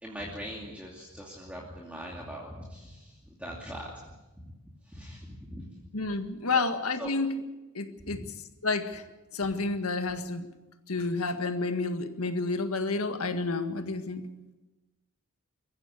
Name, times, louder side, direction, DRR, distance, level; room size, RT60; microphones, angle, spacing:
voice 1, 0.0-4.0 4.4-4.5 4.9-5.9 6.5-6.6 7.0-7.1 8.1-8.3, equal, 5° right, -3 dB, 2.6 m, -41 dB
voice 2, 5.9-7.3 7.8-8.2 8.6-9.0 9.3-10.5 10.9-14.3, left 3 dB, 90° left, 8 dB, 1.8 m, -30 dB
22.5 x 15.0 x 8.2 m, 1.1 s
head